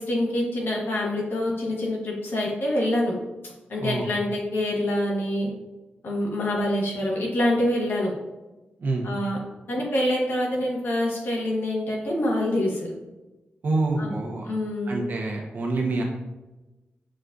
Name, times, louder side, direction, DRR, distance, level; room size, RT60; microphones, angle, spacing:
voice 1, 0.0-3.2 3.7-5.5 6.0-8.1 9.0-9.4 9.7-12.9 14.0-14.1 14.4-15.0, left 1 dB, 70° left, -2 dB, 1.0 m, -26 dB
voice 2, 8.8-9.1 13.6-14.5 14.9-16.0, right 3 dB, 55° right, 0 dB, 0.7 m, -26 dB
6.3 x 2.6 x 2.3 m, 1.1 s
wide cardioid pair, 140°, 4 cm